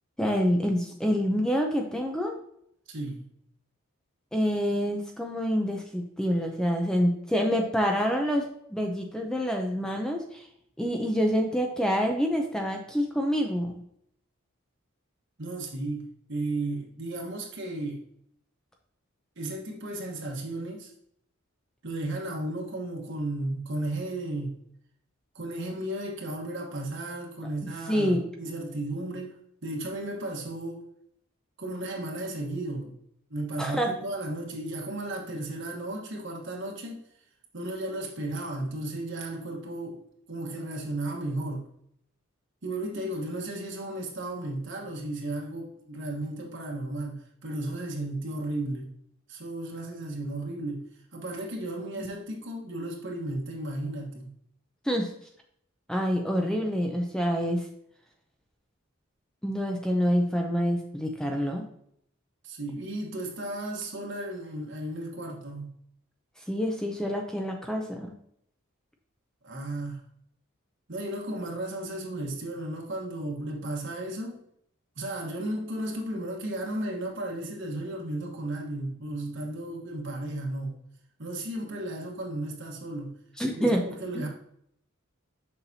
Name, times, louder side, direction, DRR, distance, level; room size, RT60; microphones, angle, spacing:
voice 1, 0.2-2.4 4.3-10.5 10.8-13.7 27.9-28.3 33.6-33.9 52.0-52.1 54.8-55.1 55.9-57.7 59.4-61.7 66.5-68.1 83.4-83.8 84.1-84.3, equal, 5° left, 2 dB, 0.5 m, -27 dB
voice 2, 2.9-3.3 15.4-18.0 19.4-20.9 21.8-24.6 25.3-30.8 31.6-33.0 33.3-37.0 37.5-40.0 40.3-41.7 42.6-48.9 49.3-50.8 51.1-54.3 62.4-65.7 69.4-70.0 70.9-74.4 75.0-80.8 81.2-83.2 83.4-84.3, right 1 dB, 60° right, 0 dB, 1.3 m, -34 dB
6.8 x 5.7 x 2.7 m, 0.70 s
head